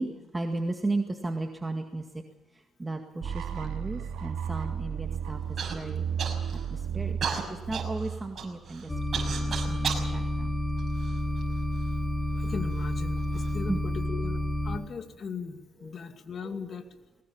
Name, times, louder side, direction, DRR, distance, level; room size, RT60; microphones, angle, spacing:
voice 1, 0.0-2.2 2.5-5.4 5.7-6.1 6.5-7.2 7.5-8.9 9.3-10.5 13.7-13.8 15.8-16.0 16.4-16.6, right 2 dB, 20° right, 4 dB, 2.0 m, -35 dB
sound 1, 3.2-9.1, right 7 dB, 80° right, 2.9 m, -34 dB
Human voice / Cough, 5.6-5.8 6.2-6.7 7.2-10.1 10.8-11.6 12.4-12.5 13.2-13.5, right 6 dB, 55° right, 6.1 m, -34 dB
sound 2, 8.9-14.8, left 1 dB, 15° left, 3.4 m, -30 dB
voice 2, 12.3-16.9, left 5 dB, 50° left, 6 dB, 2.4 m, -38 dB
21.5 x 19.5 x 7.2 m, 1.1 s
cardioid pair, 90°, 0 cm